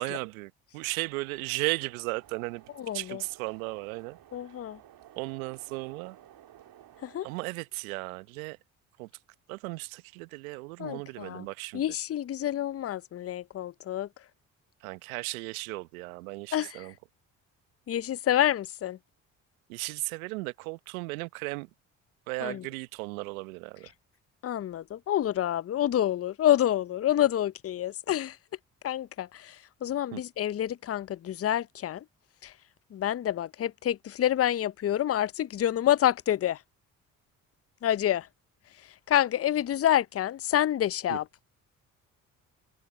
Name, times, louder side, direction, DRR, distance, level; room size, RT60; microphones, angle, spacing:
voice 1, 0.0-2.6 2.9-4.2 5.2-6.2 7.2-8.6 9.0-9.1 9.5-11.8 14.8-16.9 19.7-21.7 22.3-23.9 30.1-30.2 41.1-41.2, right 25 dB, 80° right, 0.9 m, -35 dB
sound 1, 0.8-7.4, right 11 dB, 55° right, 2.1 m, -55 dB
voice 2, 2.8-3.2 4.3-4.8 7.0-7.3 10.8-11.5 11.7-14.1 16.5-16.9 17.9-19.0 22.4-22.7 24.4-28.4 28.8-32.1 32.4-32.6 32.9-36.6 37.8-38.3 38.7-41.3, left 11 dB, 35° left, 0.7 m, -28 dB
open air
hypercardioid pair, 50°, 41 cm